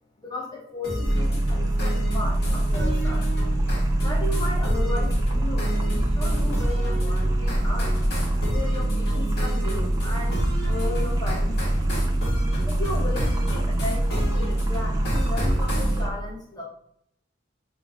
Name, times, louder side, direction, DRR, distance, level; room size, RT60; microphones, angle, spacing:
voice 1, 0.2-3.3 4.0-7.9 8.5-11.6 11.9-12.0 12.6-16.6, left 2 dB, 20° left, -1 dB, 0.6 m, -35 dB
sound 1, 0.8-16.0, equal, 55° left, 1.0 m, -32 dB
sound 2, 1.0-16.1, right 1 dB, 20° right, 0.3 m, -24 dB
2.2 x 2.1 x 3.5 m, 0.69 s
head